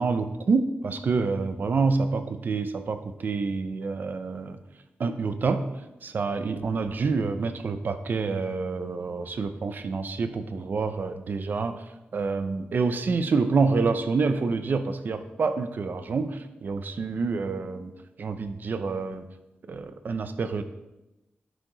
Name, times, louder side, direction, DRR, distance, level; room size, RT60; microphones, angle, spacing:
voice 1, 0.0-4.6 5.0-5.6 6.0-11.8 12.1-17.9 18.2-19.3 19.7-20.6, right 4 dB, 55° right, 9 dB, 0.6 m, -27 dB
10.5 x 4.7 x 3.8 m, 0.98 s
wide cardioid pair, 165°, 4 cm